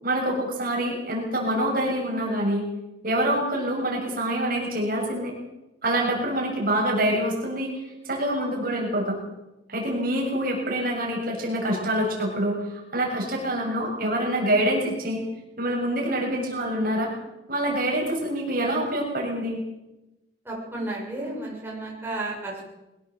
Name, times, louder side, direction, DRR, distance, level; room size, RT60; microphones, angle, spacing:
voice 1, 0.0-2.6 3.0-5.3 5.8-7.7 8.1-9.2 9.7-15.2 15.6-17.1 17.5-19.6, right 1 dB, 55° right, -1 dB, 7.0 m, -26 dB
voice 2, 20.5-22.6, right 2 dB, 10° right, -4 dB, 7.0 m, -32 dB
22.5 x 18.0 x 7.8 m, 0.98 s
head